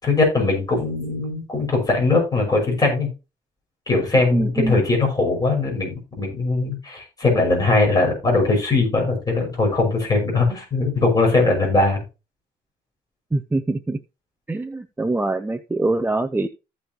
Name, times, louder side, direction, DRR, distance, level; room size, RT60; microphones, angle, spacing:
voice 1, 0.0-3.1 3.9-12.0, left 3 dB, 20° left, 6.0 m, -20 dB
voice 2, 4.3-4.8 13.3-14.0 14.5-16.5, right 2 dB, 10° right, 0.6 m, -23 dB
15.5 x 5.3 x 3.0 m
cardioid pair, 110°, 17 cm